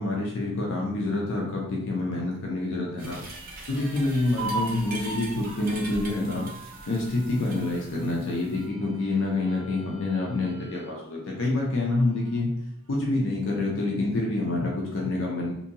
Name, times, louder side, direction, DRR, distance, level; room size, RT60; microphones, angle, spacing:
voice 1, 0.0-3.2 3.7-6.5 6.8-12.5 12.9-15.5, left 2 dB, 65° left, -2 dB, 0.5 m, -27 dB
sound 1, 3.0-8.7, right 2 dB, 45° right, 0.7 m, -43 dB
sound 2, 3.3-11.0 11.4-11.5 11.9-12.6, right 2 dB, 80° right, 0.6 m, -40 dB
2.7 x 2.6 x 2.6 m, 0.76 s
head